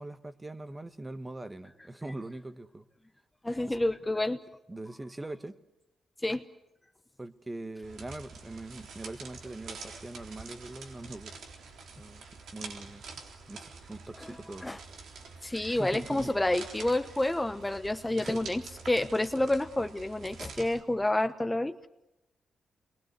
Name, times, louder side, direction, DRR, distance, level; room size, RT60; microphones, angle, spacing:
voice 1, 0.0-2.9 3.7-3.8 4.7-5.6 7.2-11.3 11.9-12.2 12.5-13.0 13.5-14.7 15.4-16.3 18.2-18.5, right 2 dB, 20° right, 10 dB, 1.5 m, -42 dB
voice 2, 3.4-4.4 6.2-6.4 14.2-14.4 14.6-14.8 15.4-21.9, left 1 dB, 10° left, 9 dB, 1.0 m, -29 dB
sound 1, 7.8-20.8, right 4 dB, 80° right, 3.9 m, -47 dB
29.0 x 22.0 x 8.1 m, 0.91 s
cardioid pair, 95°, 0 cm